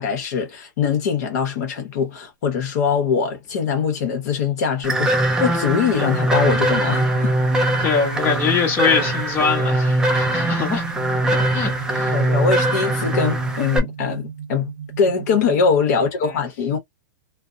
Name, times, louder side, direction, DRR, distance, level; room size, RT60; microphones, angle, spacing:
voice 1, 0.0-7.3 12.1-16.8, left 6 dB, 55° left, 0.8 m, -22 dB
sound 1, 4.8-13.8, right 1 dB, 5° right, 0.3 m, -21 dB
sound 2, 5.9-15.9, right 7 dB, 65° right, 0.5 m, -36 dB
voice 2, 7.8-10.8 11.5-12.2 15.9-16.0 16.3-16.4, left 6 dB, 20° left, 0.9 m, -23 dB
2.6 x 2.0 x 2.5 m
supercardioid pair, 165°, 11 cm